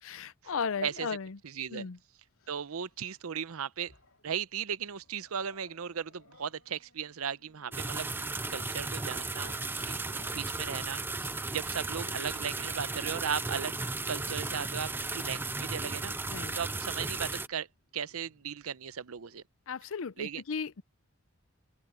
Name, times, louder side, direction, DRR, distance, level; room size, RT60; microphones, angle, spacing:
voice 1, 0.0-1.4 1.7-2.0 16.3-16.5 19.7-20.8, left 6 dB, 70° left, 0.6 m, -36 dB
voice 2, 1.4-1.9 2.5-3.9 4.2-13.7 14.1-16.2 16.6-17.7 17.9-19.4 20.2-20.4, right 7 dB, 90° right, 0.7 m, -37 dB
Growling, 2.2-3.3 3.7-4.4 4.9-19.4, left 1 dB, 85° left, 2.8 m, -61 dB
sound 1, 7.7-17.5, right 3 dB, 10° right, 0.5 m, -35 dB
open air
head